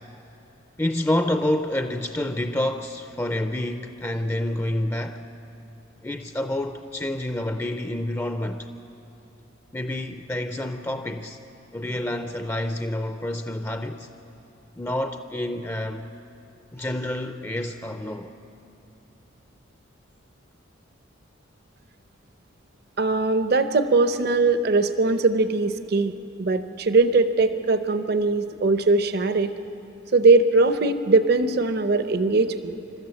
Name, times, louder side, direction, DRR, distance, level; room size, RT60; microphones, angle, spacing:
voice 1, 0.8-5.2 6.0-8.7 9.7-11.4 11.7-14.1 14.7-16.1 16.7-18.4, left 1 dB, 15° left, 0.5 m, -28 dB
voice 2, 23.0-26.1 26.4-29.5 30.1-32.7, right 3 dB, 55° right, 0.7 m, -20 dB
26.5 x 13.0 x 7.8 m
head